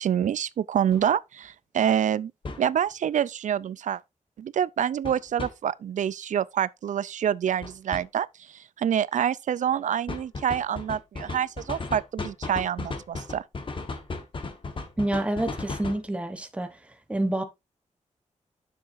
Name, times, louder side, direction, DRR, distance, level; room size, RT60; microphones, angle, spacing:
voice 1, 0.0-2.3 2.6-4.0 4.4-8.3 8.5-13.4, right 9 dB, 75° right, 0.4 m, -27 dB
sound 1, 0.9-1.0 2.4-2.7 5.0-5.5 7.6-8.0 10.1-16.1, left 3 dB, 40° left, 1.2 m, -35 dB
voice 2, 15.0-16.8 17.1-17.4, right 1 dB, 10° right, 0.9 m, -28 dB
9.4 x 7.1 x 2.6 m
wide cardioid pair, 160°, 13 cm